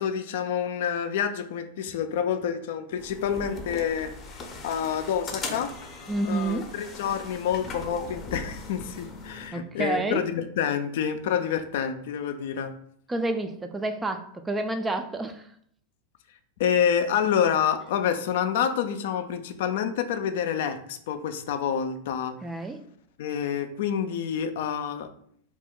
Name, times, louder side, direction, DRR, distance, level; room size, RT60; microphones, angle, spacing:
voice 1, 0.0-4.1 4.6-5.7 6.3-12.7 16.6-22.3 23.2-25.1, left 8 dB, 65° left, 8 dB, 0.3 m, -28 dB
sound 1, 3.0-9.5, left 3 dB, 30° left, 0.6 m, -39 dB
voice 2, 6.1-6.7 9.5-10.2 13.1-15.5 22.4-22.8, right 2 dB, 15° right, 8 dB, 0.3 m, -29 dB
2.5 x 2.1 x 3.6 m, 0.64 s
hypercardioid pair, 100°, 0 cm